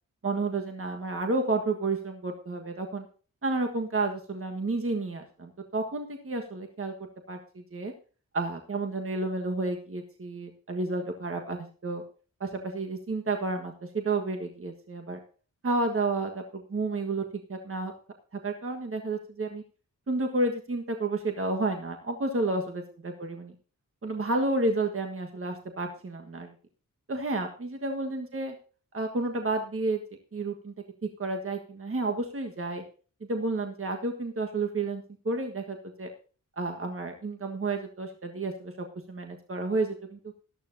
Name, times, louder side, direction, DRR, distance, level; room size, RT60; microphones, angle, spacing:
voice 1, 0.2-3.0 3.4-6.9 7.3-7.9 8.3-12.0 12.4-15.2 15.6-17.2 17.5-17.9 18.4-19.6 20.1-23.5 24.0-26.5 27.1-28.5 28.9-30.0 30.3-30.7 31.2-32.8 33.2-36.1 36.6-40.2, right 2 dB, 40° right, 4 dB, 1.5 m, -31 dB
14.0 x 12.0 x 2.7 m, 0.39 s
cardioid pair, 70°, 33 cm